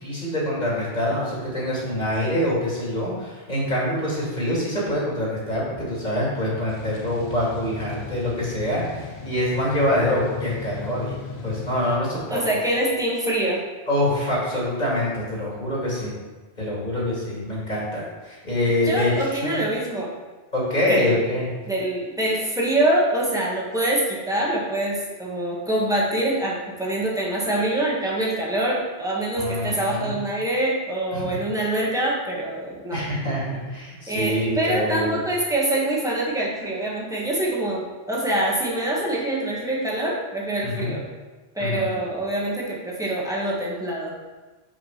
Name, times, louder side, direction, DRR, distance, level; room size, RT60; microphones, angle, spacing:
voice 1, 0.0-11.2 11.4-12.4 13.9-16.1 16.6-19.1 19.4-19.7 20.5-21.5 29.4-30.1 31.1-31.3 32.9-35.2 40.6-40.9 41.6-41.9, left 1 dB, 45° left, -6 dB, 2.5 m, -25 dB
sound 1, 6.7-12.0, left 5 dB, 85° left, 1.2 m, -35 dB
voice 2, 12.3-13.6 18.8-20.1 20.9-21.2 21.7-33.0 34.1-41.0 41.5-44.1, right 1 dB, 5° right, -5 dB, 1.5 m, -25 dB
5.7 x 5.1 x 5.7 m, 1.3 s
omnidirectional pair, 1.1 m